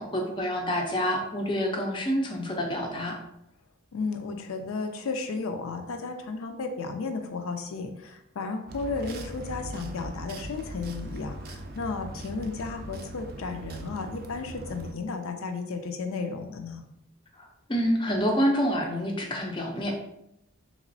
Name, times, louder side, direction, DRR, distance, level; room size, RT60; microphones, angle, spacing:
voice 1, 0.0-3.2 17.4-20.0, equal, 20° left, 1 dB, 0.4 m, -27 dB
voice 2, 3.9-16.8, left 4 dB, 80° left, 6 dB, 0.4 m, -34 dB
sound 1, 8.7-14.9, right 1 dB, 45° right, 0.4 m, -40 dB
3.5 x 3.0 x 2.6 m, 0.80 s
head